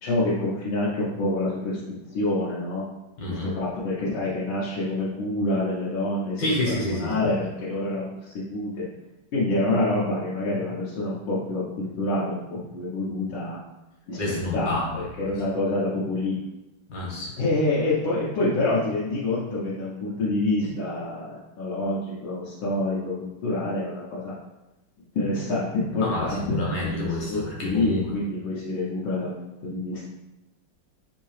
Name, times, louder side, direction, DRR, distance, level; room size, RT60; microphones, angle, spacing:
voice 1, 0.0-1.8 2.1-2.8 3.3-8.8 9.3-13.6 14.1-16.4 17.4-24.4 25.0-26.6 26.8-29.3 29.6-30.0, left 2 dB, 90° left, -8 dB, 1.5 m, -27 dB
voice 2, 3.2-3.5 6.4-7.2 14.2-14.9 15.2-15.3 16.9-17.3 26.0-28.1, left 1 dB, 70° left, -4 dB, 1.7 m, -28 dB
3.8 x 2.7 x 3.1 m, 0.99 s
omnidirectional pair, 2.1 m